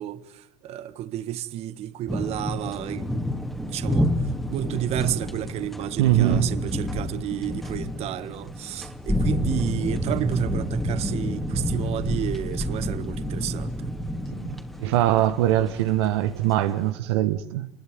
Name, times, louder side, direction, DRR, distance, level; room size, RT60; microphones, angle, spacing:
voice 1, 0.0-3.4 3.6-4.1 4.5-13.9, right 12 dB, 45° right, 1.6 m, -31 dB
sound 1, 2.1-16.9, left 1 dB, ahead, 2.9 m, -29 dB
voice 2, 6.0-6.5 14.4-17.7, right 13 dB, 65° right, 1.5 m, -22 dB
29.0 x 21.5 x 9.5 m
hypercardioid pair, 85°, 15 cm